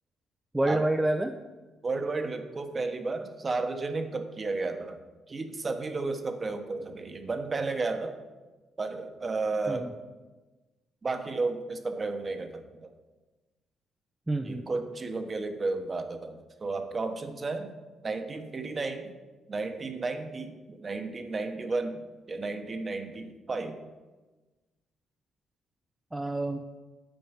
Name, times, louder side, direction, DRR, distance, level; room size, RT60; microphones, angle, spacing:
voice 1, 0.5-1.4 9.7-9.9 14.3-14.7 26.1-26.6, right 1 dB, 15° right, 4 dB, 0.5 m, -28 dB
voice 2, 1.8-8.2 8.8-9.9 11.0-12.9 14.4-17.7 18.0-19.1 19.5-23.8, right 3 dB, 35° right, 7 dB, 1.0 m, -33 dB
8.8 x 4.6 x 7.2 m, 1.2 s
cardioid pair, 90°, 0 cm